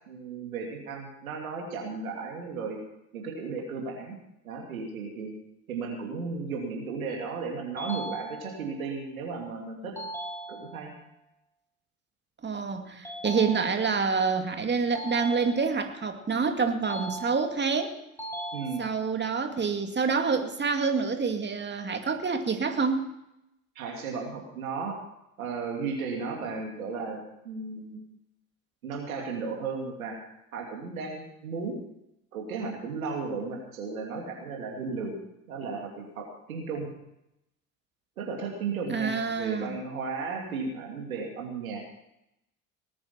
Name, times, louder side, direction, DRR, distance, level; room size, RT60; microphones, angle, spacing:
voice 1, 0.1-2.8 3.1-4.2 4.4-5.3 5.7-10.0 10.5-10.9 18.5-18.9 23.7-25.0 25.4-28.0 28.8-30.2 30.5-31.8 32.3-35.2 35.5-36.9 38.2-41.8, right 4 dB, 80° right, 0 dB, 3.0 m, -35 dB
sound 1, 7.8-8.8 10.0-11.0 13.0-14.1 14.9-16.0 16.8-17.7 18.2-19.2, right 1 dB, 5° left, 7.5 m, -39 dB
voice 2, 12.4-17.9 18.8-23.1 38.9-39.8, right 5 dB, 25° right, 5 dB, 2.4 m, -27 dB
19.0 x 9.8 x 5.8 m, 0.83 s
figure-of-eight pair, 60°, 41 cm